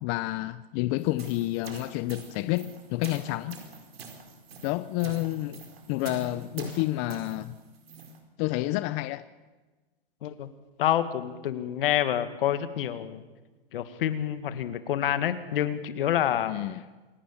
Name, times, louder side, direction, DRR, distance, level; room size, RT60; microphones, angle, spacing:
voice 1, 0.0-3.6 4.6-5.6 5.9-7.5 8.4-9.2 16.5-16.8, left 18 dB, 35° left, 0.7 m, -29 dB
sound 1, 1.0-8.2, right 4 dB, 80° right, 4.5 m, -44 dB
voice 2, 10.8-13.2 13.7-16.6, left 11 dB, 65° left, 2.0 m, -27 dB
27.0 x 11.5 x 8.9 m
hypercardioid pair, 135°, 29 cm